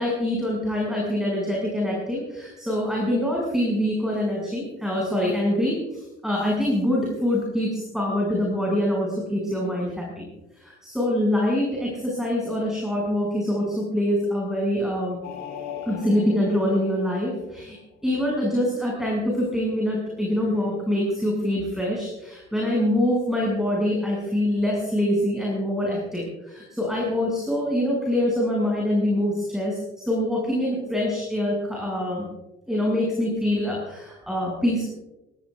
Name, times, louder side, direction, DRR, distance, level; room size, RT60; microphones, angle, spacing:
voice 1, 0.0-10.3 10.5-15.2 15.9-32.3 32.7-34.8, left 1 dB, ahead, -3 dB, 7.0 m, -25 dB
sound 1, 15.2-17.9 20.0-20.7, left 8 dB, 55° left, 4.9 m, -40 dB
23.5 x 18.5 x 2.6 m, 1.0 s
figure-of-eight pair, 50°, 34 cm